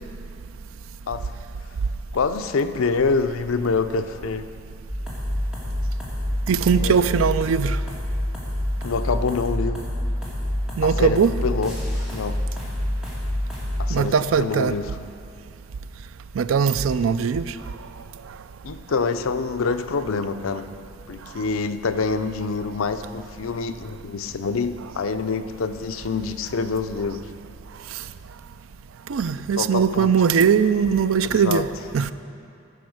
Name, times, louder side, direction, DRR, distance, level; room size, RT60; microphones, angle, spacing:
voice 1, 2.1-4.5 6.8-7.0 8.8-9.9 10.8-11.7 12.1-12.4 13.8-14.9 18.6-20.7 21.1-27.3 29.6-30.1 31.3-31.6, left 4 dB, 90° left, 9 dB, 0.5 m, -26 dB
sound 1, 4.9-14.0, left 1 dB, 5° right, 2.5 m, -27 dB
voice 2, 6.5-7.8 10.8-11.3 13.9-14.8 16.4-17.6 29.1-32.1, right 6 dB, 80° right, 13 dB, 0.4 m, -20 dB
14.5 x 6.1 x 6.4 m, 2.6 s
head